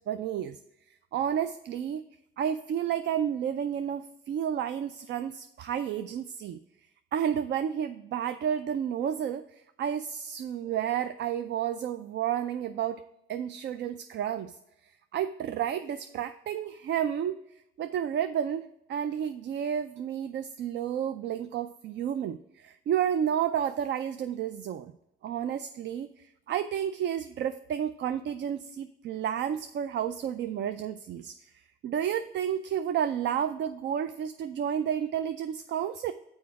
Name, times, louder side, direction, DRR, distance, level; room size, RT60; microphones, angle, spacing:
voice 1, 0.1-0.6 1.1-2.0 2.4-6.6 7.1-9.4 9.8-13.0 13.3-14.6 15.1-17.4 17.8-18.6 18.9-24.9 25.2-31.4 31.8-36.1, right 9 dB, 60° right, 10 dB, 0.4 m, -31 dB
6.3 x 4.7 x 4.6 m, 0.85 s
cardioid pair, 90°, 20 cm